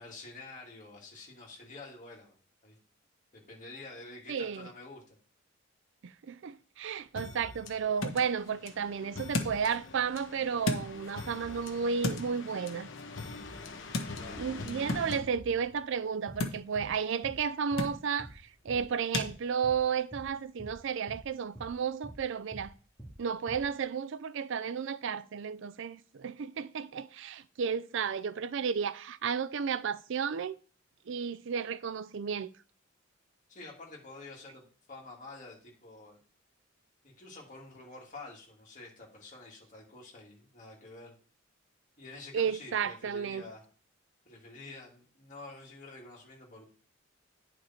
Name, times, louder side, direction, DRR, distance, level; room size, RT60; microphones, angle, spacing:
voice 1, 0.0-2.3 2.6-2.8 3.3-5.0 14.1-14.5 33.5-36.2 37.0-41.2 42.0-43.6 44.2-46.6, left 2 dB, 40° left, 2.6 m, -48 dB
voice 2, 4.3-4.7 6.2-12.9 14.4-18.3 18.6-22.7 23.2-30.6 31.1-32.5 42.3-43.4, right 6 dB, 65° right, 0.4 m, -33 dB
sound 1, 6.8-19.3, left 2 dB, 90° left, 1.3 m, -40 dB
sound 2, 7.2-16.0, left 3 dB, 65° left, 1.1 m, -45 dB
sound 3, 16.3-16.4 16.8-16.9 17.2-17.4 17.7-17.9 18.2-18.4 18.7-18.8 19.1-19.3 19.6-19.8 20.1-20.3 20.6-20.8 21.1-21.2 21.6-21.7 22.0-22.2 22.5-22.7 23.0-23.2 23.5-23.6, right 1 dB, ahead, 2.1 m, -46 dB
9.7 x 5.0 x 4.4 m
head